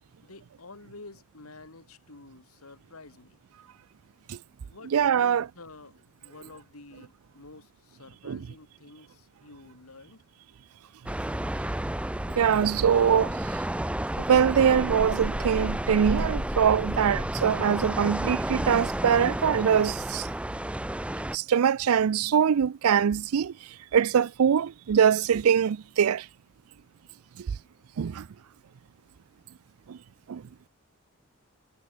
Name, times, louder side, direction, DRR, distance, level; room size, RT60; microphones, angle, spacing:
voice 1, 0.2-3.4 4.7-10.2, left 3 dB, 85° left, 2.4 m, -49 dB
voice 2, 4.9-5.4 8.2-8.4 12.4-13.6 14.3-20.3 21.3-23.5 23.9-26.3 27.4-27.5 28.0-28.3 29.9-30.0 30.3-30.4, right 8 dB, 85° right, 0.4 m, -23 dB
sound 1, 11.1-21.4, right 1 dB, 5° right, 0.5 m, -31 dB
head